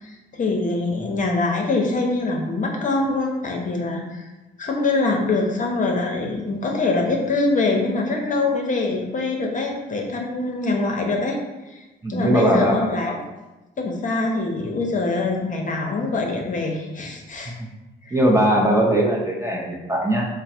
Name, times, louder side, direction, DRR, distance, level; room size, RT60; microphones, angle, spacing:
voice 1, 0.0-4.3 4.6-11.4 11.7-13.1 13.8-17.5 18.0-18.2, left 3 dB, 40° left, 0 dB, 0.7 m, -24 dB
voice 2, 12.0-12.9 18.1-20.2, right 1 dB, 15° right, -1 dB, 0.6 m, -19 dB
3.7 x 2.0 x 4.2 m, 1.1 s
cardioid pair, 90°, 20 cm